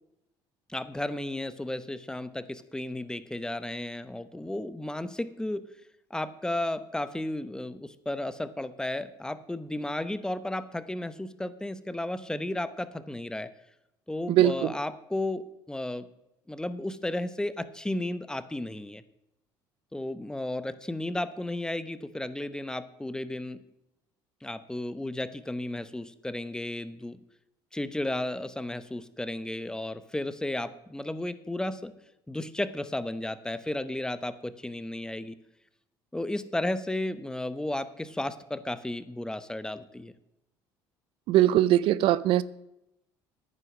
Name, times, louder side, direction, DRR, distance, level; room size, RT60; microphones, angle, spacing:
voice 1, 0.7-5.6 6.1-13.5 14.1-16.1 16.5-19.0 19.9-23.6 24.4-27.2 27.7-32.0 32.3-35.4 36.1-40.1, left 1 dB, 5° left, 13 dB, 0.9 m, -33 dB
voice 2, 14.3-14.7 41.3-42.4, right 13 dB, 65° right, 18 dB, 0.5 m, -21 dB
9.8 x 9.5 x 6.1 m, 0.84 s
supercardioid pair, 90°, 10 cm